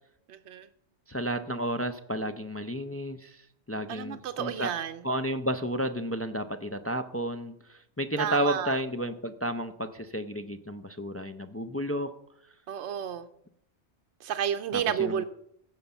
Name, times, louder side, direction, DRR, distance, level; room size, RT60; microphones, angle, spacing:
voice 1, 0.3-0.7 3.9-5.0 8.2-8.7 12.7-13.3 14.2-15.2, right 9 dB, 85° right, 0.9 m, -31 dB
voice 2, 1.1-4.8 5.0-12.2 14.7-15.2, right 1 dB, 20° left, 0.4 m, -32 dB
15.5 x 5.4 x 7.0 m
omnidirectional pair, 1.1 m